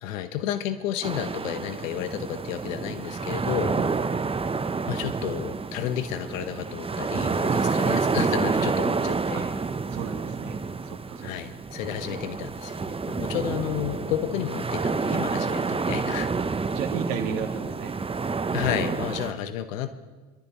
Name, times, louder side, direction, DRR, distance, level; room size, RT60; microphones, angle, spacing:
voice 1, 0.0-3.8 4.9-9.5 11.2-16.3 18.5-19.9, left 10 dB, 85° left, 11 dB, 1.1 m, -31 dB
sound 1, 1.0-19.3, right 4 dB, 15° right, 0.7 m, -28 dB
voice 2, 7.6-8.0 9.3-9.4 9.9-10.6 10.8-11.3 16.4-17.9, right 7 dB, 80° right, 4 dB, 2.0 m, -34 dB
26.0 x 12.0 x 3.0 m, 1.3 s
hypercardioid pair, 70°, 38 cm